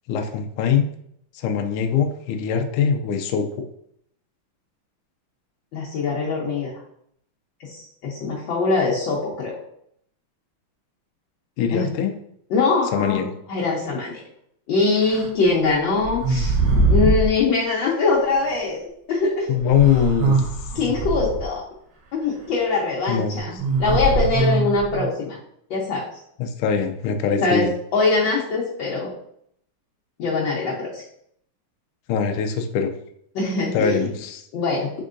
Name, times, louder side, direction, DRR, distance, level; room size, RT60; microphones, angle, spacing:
voice 1, 0.1-0.9 1.3-3.7 11.6-12.1 12.9-13.3 19.5-20.4 23.1-23.6 26.4-27.7 32.1-32.9 33.7-34.5, left 7 dB, 80° left, 6 dB, 1.4 m, -22 dB
voice 2, 5.7-6.7 7.6-9.5 11.7-11.9 12.5-14.2 14.7-16.6 16.9-19.5 20.7-21.6 22.1-25.4 25.7-26.2 27.4-29.1 30.2-31.0 33.3-34.1 34.5-34.9, left 3 dB, 65° left, -5 dB, 1.5 m, -23 dB
sound 1, 15.1-15.3 16.0-17.3 18.5-18.6 19.7-21.5 23.6-25.1, right 2 dB, 70° right, 1.6 m, -21 dB
4.6 x 4.4 x 2.5 m, 0.69 s
omnidirectional pair, 2.4 m